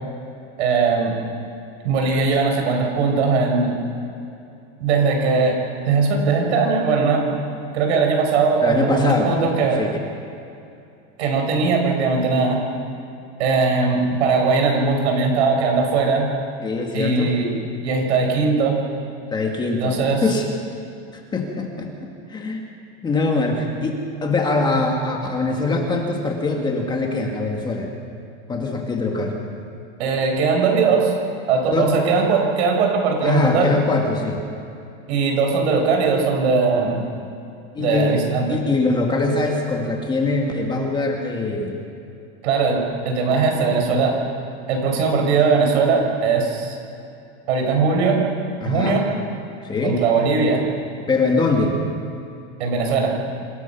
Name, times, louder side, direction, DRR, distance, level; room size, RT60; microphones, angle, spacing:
voice 1, 0.6-1.1 1.8-3.8 4.8-5.6 5.9-7.2 7.7-9.8 11.2-12.6 13.4-16.3 16.9-17.5 17.8-18.8 19.8-20.2 30.0-31.1 31.5-33.8 35.1-37.0 37.8-38.6 42.4-44.1 44.7-46.8 47.5-48.2 48.6-49.1 49.8-50.6 52.6-53.1, right 4 dB, 80° right, 2 dB, 5.5 m, -19 dB
voice 2, 8.6-9.3 9.8-9.9 16.6-17.4 19.3-20.5 21.1-21.9 22.3-22.7 23.0-27.9 28.5-29.4 31.7-32.0 33.2-34.4 37.8-38.1 38.5-41.8 48.6-49.0 49.6-50.0 51.1-51.8, left 3 dB, 15° left, 1 dB, 1.8 m, -22 dB
26.5 x 18.0 x 5.9 m, 2.6 s
supercardioid pair, 170°, 33 cm